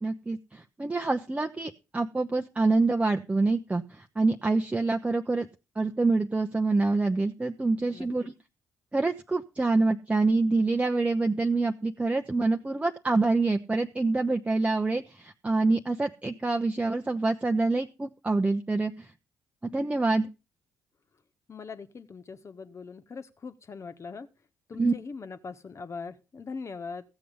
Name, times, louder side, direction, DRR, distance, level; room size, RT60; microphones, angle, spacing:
voice 1, 0.0-5.5 5.8-8.3 8.9-19.1 19.7-20.3 24.8-24.9, right 3 dB, 15° right, 4 dB, 0.9 m, -26 dB
voice 2, 21.5-24.3 24.7-27.0, left 4 dB, 40° left, 10 dB, 1.5 m, -41 dB
15.0 x 7.8 x 5.4 m, 0.30 s
figure-of-eight pair, 40°, 7 cm